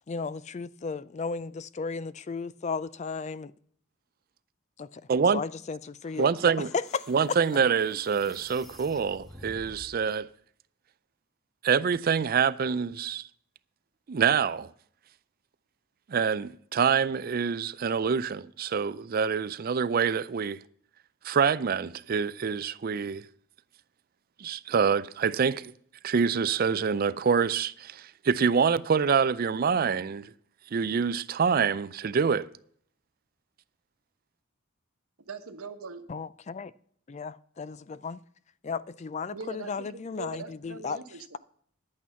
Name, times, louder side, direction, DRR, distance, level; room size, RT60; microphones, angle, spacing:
voice 1, 0.1-3.5 4.8-5.0 5.3-7.0 36.1-36.7 37.1-38.2 38.6-41.0, left 5 dB, 30° left, 0.4 m, -35 dB
voice 2, 5.1-5.4 6.2-6.7 7.1-10.3 11.6-13.3 14.1-14.7 16.1-20.6 21.2-23.3 24.4-25.7 26.0-30.3 30.7-32.5, right 6 dB, 45° right, 0.4 m, -26 dB
sound 1, 6.0-10.1, equal, ahead, 0.9 m, -50 dB
voice 3, 35.3-36.0 39.3-41.4, right 4 dB, 90° right, 1.2 m, -41 dB
11.0 x 8.6 x 5.6 m
head